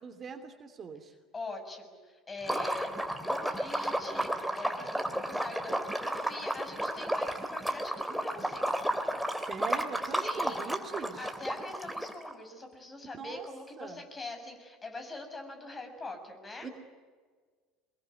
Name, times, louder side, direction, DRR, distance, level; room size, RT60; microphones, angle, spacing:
voice 1, 0.0-1.1 9.3-11.3 13.2-13.5 13.8-14.0 16.6-16.7, right 5 dB, 35° right, 7 dB, 2.8 m, -41 dB
voice 2, 1.3-3.0 3.3-8.6 10.2-10.8 11.1-16.7, left 2 dB, 25° left, 5 dB, 6.8 m, -43 dB
Liquid, 2.4-12.3, right 1 dB, ahead, 3.0 m, -33 dB
24.5 x 22.0 x 9.7 m, 1.5 s
hypercardioid pair, 70°, 0 cm